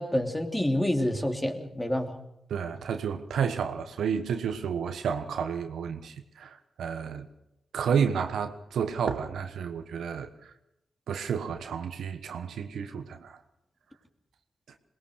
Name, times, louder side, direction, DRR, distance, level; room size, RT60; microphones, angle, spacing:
voice 1, 0.0-2.2, left 1 dB, 15° left, 3.1 m, -28 dB
voice 2, 2.5-7.3 7.7-10.5 11.1-13.4, right 7 dB, 80° right, 1.3 m, -31 dB
21.5 x 19.5 x 6.5 m
supercardioid pair, 40°, 0 cm